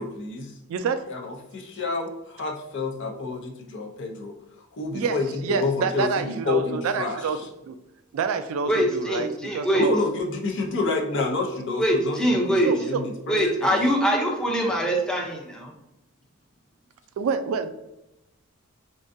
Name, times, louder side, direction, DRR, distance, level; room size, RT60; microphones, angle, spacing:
voice 1, 0.0-0.5 1.1-4.3 4.7-7.3 9.7-13.8, left 3 dB, 55° left, 2 dB, 0.6 m, -29 dB
voice 2, 0.7-1.0 4.9-5.2 5.4-7.4 7.7-7.8 8.1-9.9 12.6-13.0 17.2-17.7, right 5 dB, 70° right, 10 dB, 0.3 m, -27 dB
voice 3, 8.7-9.9 11.8-12.7 13.3-15.7, equal, 5° left, -1 dB, 0.5 m, -23 dB
3.7 x 2.5 x 2.5 m, 0.90 s
head